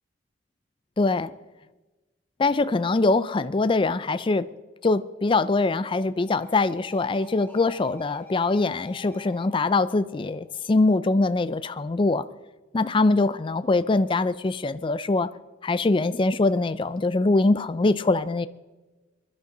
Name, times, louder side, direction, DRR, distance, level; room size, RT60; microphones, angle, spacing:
voice 1, 1.0-1.3 2.4-4.5 4.8-12.2 12.7-15.3 15.6-18.5, left 3 dB, 25° left, 0.4 m, -23 dB
sound 1, 6.3-11.2, left 5 dB, 10° left, 2.9 m, -48 dB
21.5 x 12.0 x 3.9 m
head